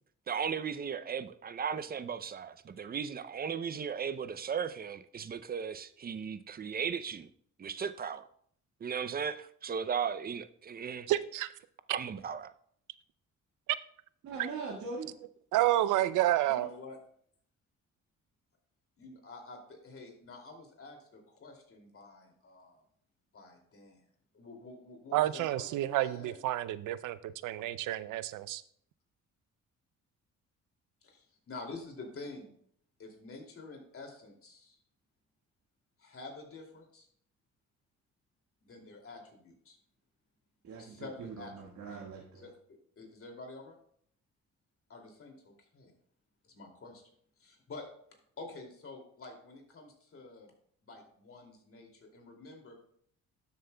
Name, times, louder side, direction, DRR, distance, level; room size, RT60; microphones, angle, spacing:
voice 1, 0.3-7.3 7.6-8.2 8.8-11.1 11.9-12.5, right 7 dB, 30° right, 0.5 m, -36 dB
voice 2, 11.1-11.5 15.5-16.7 25.1-28.6, right 14 dB, 85° right, 0.5 m, -29 dB
voice 3, 14.2-15.1 40.6-42.5, right 4 dB, 70° right, 1.7 m, -41 dB
voice 4, 16.5-17.0 19.0-22.8 23.3-24.0 24.3-26.4 31.0-32.5 33.0-34.8 36.0-37.1 38.7-39.8 40.8-41.8 42.3-42.5 43.0-43.7 44.9-45.9 46.5-47.0 47.4-47.8 48.4-50.5 50.8-52.7, left 3 dB, 45° left, 2.6 m, -48 dB
12.5 x 7.5 x 2.2 m
cardioid pair, 90°, 30 cm